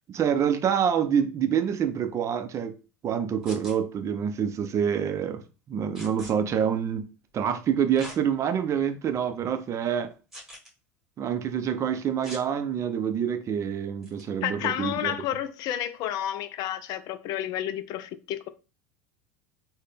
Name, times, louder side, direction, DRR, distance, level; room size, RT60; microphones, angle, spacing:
voice 1, 0.1-2.8 3.0-5.4 5.7-10.1 11.2-15.1, right 8 dB, 35° right, 0.5 m, -27 dB
sound 1, 3.4-3.8 5.9-6.3 8.0-8.2 8.8-8.9 10.3-10.7 12.2-12.4 14.0-14.2, equal, 5° right, 1.7 m, -42 dB
voice 2, 14.4-18.5, left 11 dB, 50° left, 0.4 m, -31 dB
3.9 x 2.2 x 3.3 m
hypercardioid pair, 80°, 8 cm